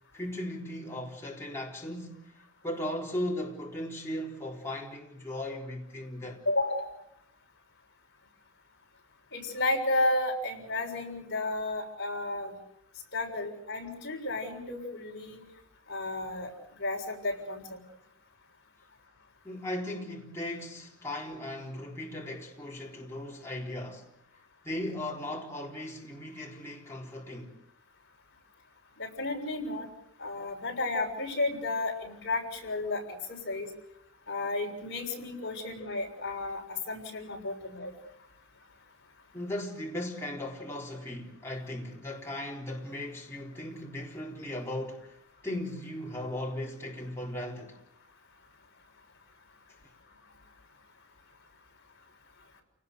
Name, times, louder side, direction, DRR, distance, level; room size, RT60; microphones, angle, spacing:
voice 1, 0.1-2.2 2.6-6.4 19.4-24.1 24.6-27.5 39.3-45.2 45.4-47.8, left 1 dB, 10° left, 4.0 m, -37 dB
voice 2, 6.4-6.9 9.3-12.5 13.1-15.4 15.9-16.5 16.8-17.8 29.0-29.9 30.2-33.0 33.3-33.7 34.3-37.9, left 2 dB, 50° left, 6.5 m, -32 dB
29.5 x 19.0 x 6.8 m
head